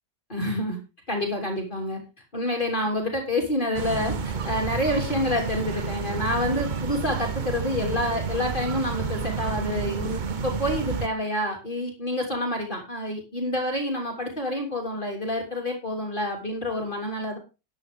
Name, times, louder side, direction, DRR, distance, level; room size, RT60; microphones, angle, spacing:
voice 1, 0.3-0.8 1.1-2.0 2.3-17.4, left 1 dB, 25° left, 0 dB, 3.1 m, -28 dB
sound 1, 3.8-11.1, right 6 dB, 45° right, 0.6 m, -30 dB
12.5 x 9.8 x 3.6 m, 0.29 s
omnidirectional pair, 1.9 m